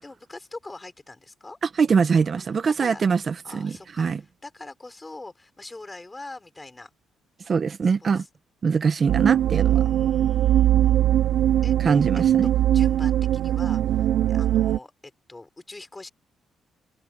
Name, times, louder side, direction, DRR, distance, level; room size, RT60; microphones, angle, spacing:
voice 1, 0.0-1.6 2.7-3.1 3.4-6.9 7.8-8.3 9.7-11.0 11.6-12.2 12.5-16.1, left 2 dB, 20° left, 5.8 m, -43 dB
voice 2, 1.6-4.2 7.5-8.2 8.6-9.8 11.8-12.5, right 5 dB, 45° right, 1.2 m, -23 dB
sound 1, 9.1-14.8, right 12 dB, 75° right, 0.5 m, -21 dB
cardioid pair, 90°, 0 cm